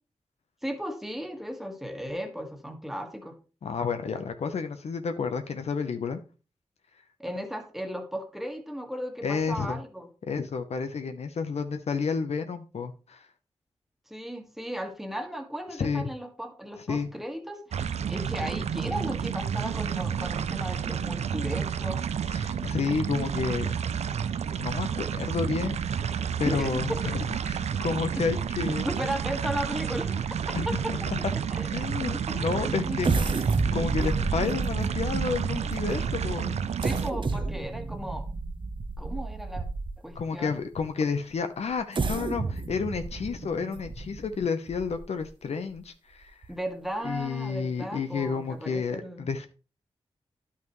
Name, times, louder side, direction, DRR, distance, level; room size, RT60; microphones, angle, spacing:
voice 1, 0.6-3.4 7.2-10.1 14.1-22.0 26.4-27.0 28.8-30.2 30.6-31.1 31.5-33.2 36.8-38.3 39.0-39.7 40.0-40.6 46.5-49.3, equal, ahead, 5 dB, 1.5 m, -36 dB
voice 2, 3.6-6.2 9.2-9.8 10.3-13.3 15.8-16.1 16.9-17.1 22.3-23.7 24.6-28.9 30.5-31.2 31.7-36.6 40.1-46.3 47.0-49.5, left 5 dB, 75° left, 8 dB, 0.8 m, -31 dB
sound 1, 17.7-37.1, right 7 dB, 80° right, 0.4 m, -30 dB
sound 2, 33.0-40.1 40.7-40.8 41.7-45.2 45.7-45.8 46.2-46.5, right 3 dB, 45° right, 0.8 m, -31 dB
10.5 x 5.7 x 3.1 m, 0.34 s
cardioid pair, 55°, 11 cm